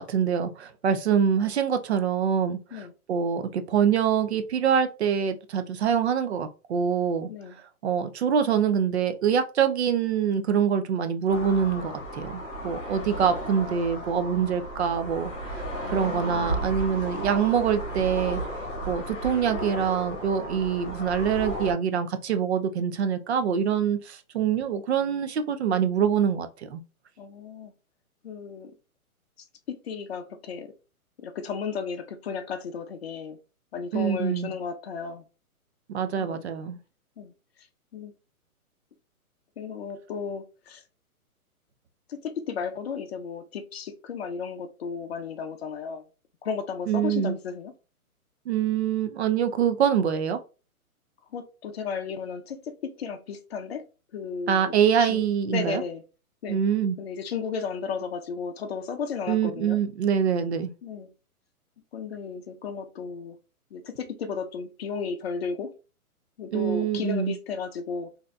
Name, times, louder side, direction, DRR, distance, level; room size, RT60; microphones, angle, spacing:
voice 1, 0.0-2.8 3.1-7.3 7.8-15.3 15.9-18.4 18.9-26.8 33.9-34.5 35.9-36.8 46.9-47.4 48.5-50.4 54.5-55.8 56.5-57.0 59.3-60.7 66.5-67.4, right 7 dB, 50° right, 0.5 m, -25 dB
sound 1, 11.3-21.7, right 1 dB, 25° left, 1.4 m, -34 dB
voice 2, 15.8-16.6 27.2-27.7 28.2-28.7 29.4-30.7 31.2-33.4 33.7-35.2 36.2-36.5 37.2-37.3 37.9-38.1 39.6-40.8 42.1-46.0 46.4-47.7 51.3-53.8 54.1-55.2 55.5-56.0 56.4-56.6 57.0-59.8 60.8-61.1 61.9-63.4 63.7-65.7 66.4-68.1, left 6 dB, 45° left, 0.6 m, -34 dB
3.8 x 2.7 x 2.2 m
hypercardioid pair, 155°, 44 cm